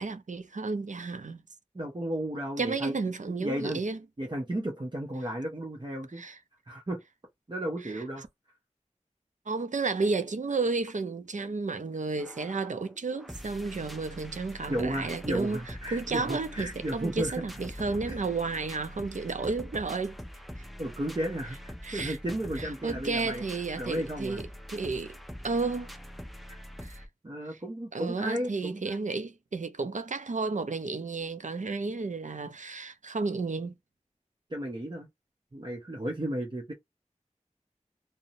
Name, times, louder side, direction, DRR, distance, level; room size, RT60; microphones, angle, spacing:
voice 1, 0.0-1.4 2.6-4.0 6.2-6.4 7.8-8.3 9.5-15.6 15.9-20.2 20.6-20.7 21.8-22.2 22.6-25.2 25.4-25.9 26.8-27.1 27.5-27.6 27.9-33.8, right 3 dB, 75° right, 0.4 m, -32 dB
voice 2, 1.7-2.9 3.4-3.8 4.2-6.2 6.7-7.0 7.5-8.2 14.7-17.4 18.0-18.1 20.8-24.4 26.5-26.6 27.2-29.1 34.5-35.1 35.5-36.7, right 1 dB, 40° right, 0.7 m, -34 dB
sound 1, 12.2-27.1, equal, ahead, 0.5 m, -44 dB
2.6 x 2.0 x 2.7 m
wide cardioid pair, 45°, 13 cm